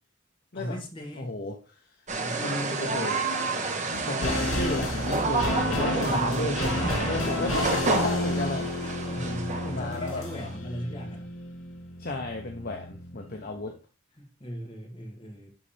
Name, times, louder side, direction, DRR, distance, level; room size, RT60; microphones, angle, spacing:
voice 1, 0.5-1.4 2.2-3.0 6.0-7.2 8.6-11.3 14.2-15.5, equal, 25° left, -1 dB, 2.0 m, -37 dB
voice 2, 1.2-1.8 2.3-3.2 4.0-8.6 9.7-10.3 12.0-13.8, left 2 dB, 45° left, 2 dB, 0.9 m, -33 dB
sound 1, 2.1-10.6, right 3 dB, 35° right, 1.1 m, -30 dB
sound 2, 3.9-13.3 13.6-13.7, left 1 dB, 90° left, 2.7 m, -32 dB
11.0 x 4.1 x 3.4 m, 0.31 s
head